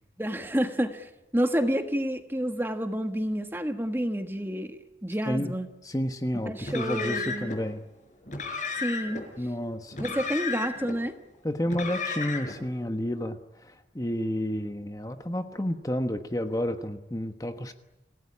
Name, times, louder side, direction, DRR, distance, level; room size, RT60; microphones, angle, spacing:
voice 1, 0.2-5.7 6.4-7.5 8.8-9.2 10.0-11.1, equal, 10° right, 7 dB, 1.5 m, -29 dB
voice 2, 5.8-7.8 9.4-10.2 11.4-17.7, equal, 20° left, 7 dB, 1.2 m, -31 dB
Car, 6.6-7.6 8.3-9.2 9.9-11.0 11.6-12.6, left 4 dB, 45° left, 5.7 m, -33 dB
27.0 x 18.0 x 10.0 m, 0.99 s
head